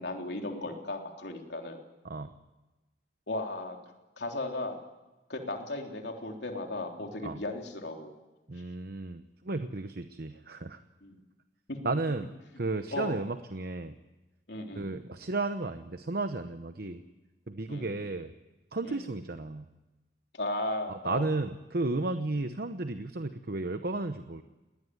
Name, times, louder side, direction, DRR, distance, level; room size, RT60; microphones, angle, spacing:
voice 1, 0.0-1.8 3.3-3.8 4.2-4.8 5.3-8.1 11.0-11.2 11.7-11.8 12.9-13.2 14.5-15.0 16.8-17.0 17.7-17.9 18.8-19.1 20.3-21.3 22.4-22.5, left 2 dB, 70° left, 2 dB, 3.5 m, -36 dB
voice 2, 8.5-10.8 11.8-12.3 12.6-14.0 14.7-17.0 17.5-18.3 18.7-19.7 20.9-24.4, right 2 dB, 60° right, 9 dB, 0.9 m, -33 dB
21.0 x 19.0 x 9.5 m, 1.1 s
head